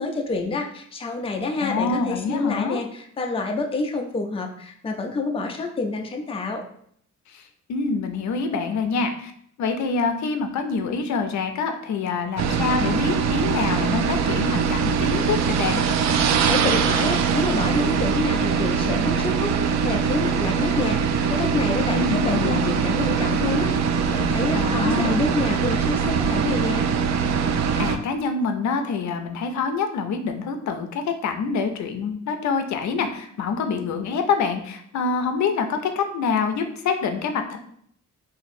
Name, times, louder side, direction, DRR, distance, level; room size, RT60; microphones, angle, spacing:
voice 1, 0.0-6.6 16.5-21.0 21.3-26.8, left 3 dB, 20° left, 3 dB, 0.5 m, -28 dB
voice 2, 1.6-2.8 7.3-7.4 7.7-9.3 9.6-15.8 22.0-22.6 24.5-25.3 27.8-37.6, left 5 dB, 65° left, 6 dB, 0.6 m, -26 dB
sound 1, 12.4-28.0, right 6 dB, 60° right, 0.4 m, -22 dB
3.0 x 2.6 x 4.1 m, 0.65 s
cardioid pair, 100°, 30 cm